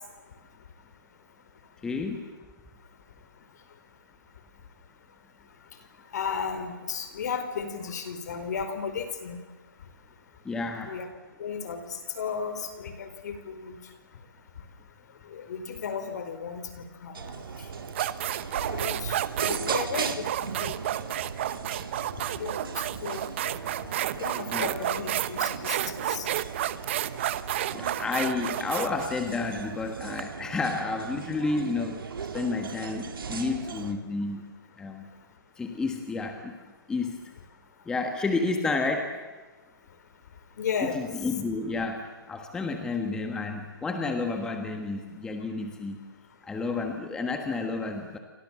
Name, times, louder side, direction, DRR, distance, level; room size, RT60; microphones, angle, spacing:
voice 1, 1.8-2.3 10.4-10.9 24.5-24.8 27.7-32.0 32.3-34.4 34.8-35.1 35.6-36.5 36.9-37.3 37.8-39.1 40.8-46.0 46.4-48.2, left 3 dB, 5° left, 4 dB, 1.5 m, -30 dB
voice 2, 6.1-9.4 10.8-11.1 11.4-13.8 15.3-17.5 18.7-20.8 22.4-22.6 23.0-23.5 24.2-26.3 40.6-41.0, left 6 dB, 50° left, 9 dB, 4.5 m, -34 dB
sound 1, 17.1-33.9, right 5 dB, 75° right, 3.2 m, -38 dB
sound 2, 17.3-17.4 17.9-30.2, right 13 dB, 30° right, 0.9 m, -31 dB
29.5 x 25.0 x 7.5 m, 1.3 s
hypercardioid pair, 165°, 12 cm